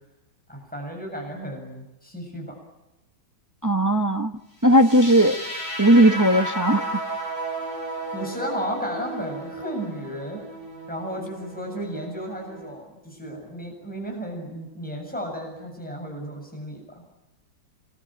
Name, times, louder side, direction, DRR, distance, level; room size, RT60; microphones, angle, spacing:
voice 1, 0.5-2.6 8.1-10.4 10.9-17.0, equal, 5° left, 1 dB, 7.6 m, -33 dB
voice 2, 3.6-4.3 4.6-5.4 5.8-6.8, right 1 dB, 15° right, 6 dB, 0.7 m, -17 dB
sound 1, 4.7-12.7, right 1 dB, 25° left, 7.9 m, -34 dB
27.0 x 22.0 x 9.1 m, 0.97 s
omnidirectional pair, 2.2 m